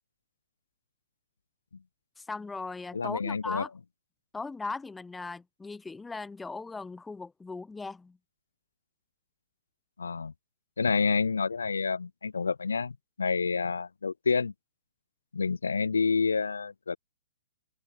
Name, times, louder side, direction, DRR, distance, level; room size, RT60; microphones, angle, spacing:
voice 1, 2.2-3.7 4.3-8.2, left 3 dB, 10° left, 1.1 m, -38 dB
voice 2, 2.9-3.6 10.0-10.3 10.8-14.5 15.3-17.0, left 5 dB, 80° left, 0.7 m, -28 dB
hypercardioid pair, 125°, 0 cm